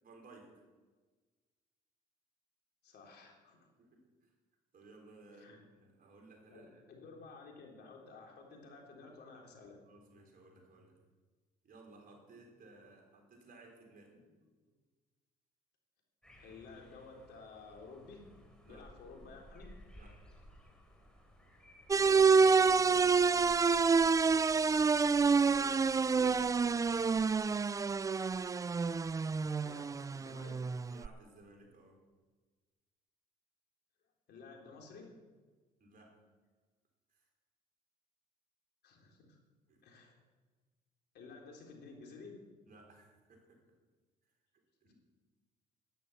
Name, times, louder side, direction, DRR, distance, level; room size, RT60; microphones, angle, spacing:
voice 1, 0.0-0.6 3.8-4.3 4.7-6.8 9.8-10.9 11.6-14.3 14.7-14.8 18.6-18.9 19.9-20.2 23.3-23.6 26.6-26.9 30.9-32.0 35.8-36.2 37.1-37.3 39.7-39.8 42.7-43.6 44.8-44.9, right 2 dB, 50° right, 1 dB, 4.5 m, -58 dB
voice 2, 2.8-3.6 5.3-5.6 6.5-9.8 16.4-18.3 18.7-19.7 21.9-23.0 25.3-26.4 29.6-30.6 34.3-35.1 38.8-39.4 39.8-40.1 41.1-42.4 44.9-45.0, left 4 dB, 65° left, 0 dB, 3.8 m, -53 dB
sound 1, 16.2-27.4, left 1 dB, 5° left, 4.8 m, -59 dB
sound 2, 21.9-31.1, right 5 dB, 20° right, 0.3 m, -28 dB
11.5 x 11.0 x 7.1 m, 1.3 s
supercardioid pair, 65°, 19 cm